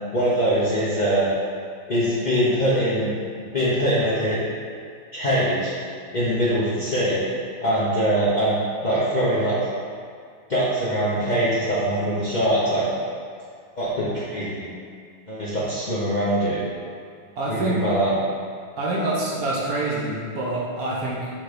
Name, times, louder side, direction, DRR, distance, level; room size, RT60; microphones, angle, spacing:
voice 1, 0.1-1.3 1.9-3.1 3.5-4.4 5.1-5.7 6.1-7.2 7.6-9.6 10.5-12.8 13.8-14.7 15.3-16.6 17.5-18.2, equal, 40° left, -10 dB, 0.6 m, -22 dB
voice 2, 17.4-17.8 18.8-21.3, right 2 dB, 55° right, -5 dB, 1.1 m, -26 dB
5.8 x 3.8 x 5.0 m, 2.1 s
omnidirectional pair, 2.3 m